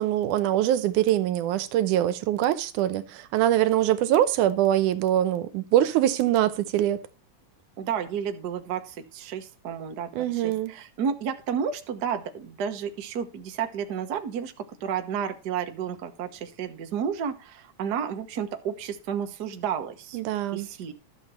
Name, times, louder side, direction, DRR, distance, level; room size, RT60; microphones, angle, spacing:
voice 1, 0.0-7.0 10.1-10.7 20.1-20.7, right 12 dB, 90° right, 2.3 m, -23 dB
voice 2, 7.8-20.2 20.5-20.9, right 7 dB, 55° right, 1.1 m, -31 dB
13.0 x 7.3 x 4.2 m
omnidirectional pair, 3.5 m